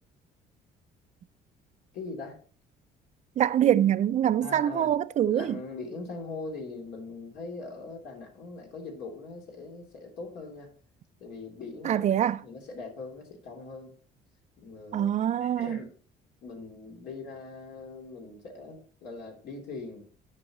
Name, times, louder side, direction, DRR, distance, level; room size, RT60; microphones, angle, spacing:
voice 1, 1.9-2.4 4.4-4.9 5.3-10.7 11.2-12.0 12.4-13.9 14.6-15.1 15.4-15.9 16.4-20.1, left 3 dB, 75° left, 3.0 m, -41 dB
voice 2, 3.4-5.6 11.8-12.4 14.9-15.8, right 10 dB, 45° right, 0.4 m, -24 dB
10.5 x 5.7 x 3.0 m
cardioid pair, 110°, 17 cm